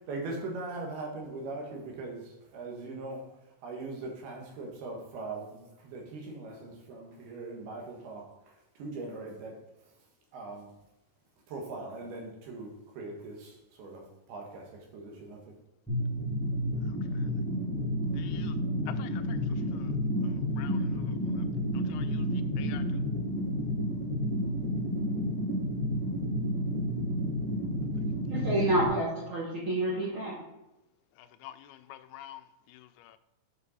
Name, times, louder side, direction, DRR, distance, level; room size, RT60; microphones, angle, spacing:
voice 1, 0.0-3.3 3.6-8.3 8.8-9.6 10.3-10.7 11.5-15.5, right 3 dB, 90° right, 3.4 m, -40 dB
sound 1, 15.9-28.9, equal, 10° left, 0.6 m, -31 dB
voice 2, 18.1-18.6 18.9-19.4 19.7-19.9 20.6-21.4 21.9-22.3 22.6-23.0 31.2-32.4 32.7-33.2, left 13 dB, 90° left, 2.5 m, -48 dB
voice 3, 28.3-30.4, right 1 dB, 65° right, 1.3 m, -29 dB
8.0 x 5.2 x 4.1 m
omnidirectional pair, 4.4 m